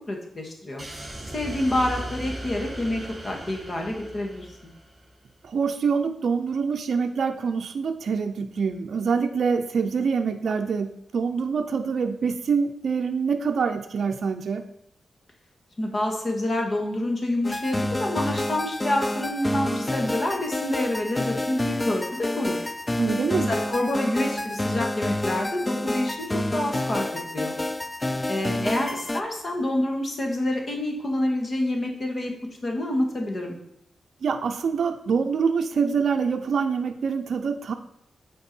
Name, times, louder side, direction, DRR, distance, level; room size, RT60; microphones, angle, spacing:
voice 1, 0.1-0.8 1.3-4.7 15.8-22.7 23.5-27.6 28.3-32.3 32.6-33.6, left 1 dB, 40° left, 1 dB, 1.6 m, -27 dB
sound 1, 0.8-5.1, right 1 dB, 25° right, 3.1 m, -37 dB
voice 2, 5.4-14.6 23.0-23.5 28.5-28.8 34.2-37.7, right 5 dB, 70° right, 5 dB, 0.5 m, -25 dB
sound 2, 17.4-29.2, left 1 dB, 15° left, 0.4 m, -29 dB
8.0 x 4.7 x 4.4 m, 0.80 s
wide cardioid pair, 100°, 0 cm